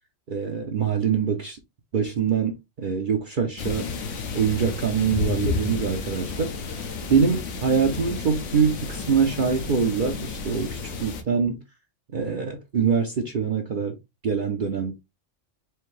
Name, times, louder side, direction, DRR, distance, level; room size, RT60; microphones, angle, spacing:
voice 1, 0.3-1.6 1.9-3.9 4.3-6.5 7.1-11.6 12.1-14.0 14.2-14.9, right 6 dB, 50° right, 0.7 m, -24 dB
sound 1, 3.6-11.2, left 4 dB, 70° left, 1.2 m, -31 dB
4.6 x 2.7 x 3.1 m
omnidirectional pair, 1.3 m